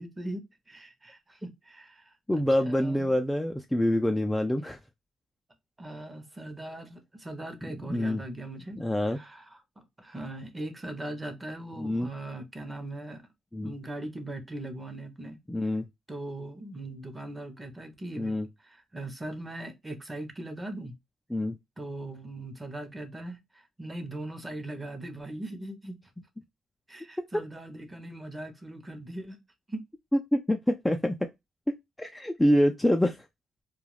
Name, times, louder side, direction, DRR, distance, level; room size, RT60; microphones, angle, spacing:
voice 1, 0.0-3.2 5.8-8.8 9.1-13.3 13.6-15.4 16.1-18.3 18.6-20.9 21.8-26.0 26.9-29.4 29.7-29.8, right 1 dB, 20° right, 0.8 m, -40 dB
voice 2, 2.3-4.8 7.9-8.2 8.8-9.2 11.8-12.1 13.5-13.7 15.5-15.8 18.2-18.5 21.3-21.5 27.2-27.3 30.3-31.2 32.0-33.2, left 1 dB, 5° left, 0.3 m, -26 dB
2.4 x 2.3 x 3.2 m
cardioid pair, 90°, 0 cm